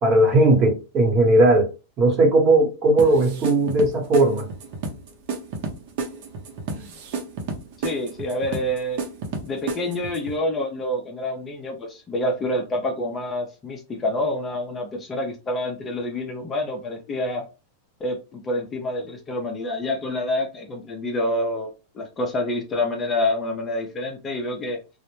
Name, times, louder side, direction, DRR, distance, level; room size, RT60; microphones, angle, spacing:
voice 1, 0.0-1.7 2.0-4.5, right 2 dB, 35° right, 1.0 m, -17 dB
sound 1, 3.0-10.4, right 4 dB, 55° right, 0.6 m, -32 dB
voice 2, 7.8-9.0 9.4-17.5 18.0-24.8, left 1 dB, 20° left, 0.5 m, -27 dB
2.1 x 2.0 x 3.0 m
supercardioid pair, 135°, 0 cm